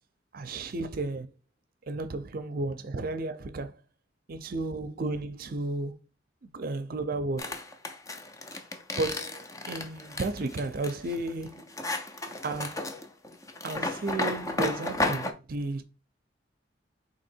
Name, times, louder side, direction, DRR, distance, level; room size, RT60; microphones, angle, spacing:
voice 1, 0.3-1.3 1.9-3.8 4.3-6.0 6.4-7.6 8.5-8.6 9.0-11.7 12.4-12.9 13.6-15.8, right 2 dB, 55° right, 0.5 m, -33 dB
sound 1, 7.4-15.3, left 2 dB, 20° left, 0.5 m, -33 dB
3.7 x 3.0 x 4.3 m
head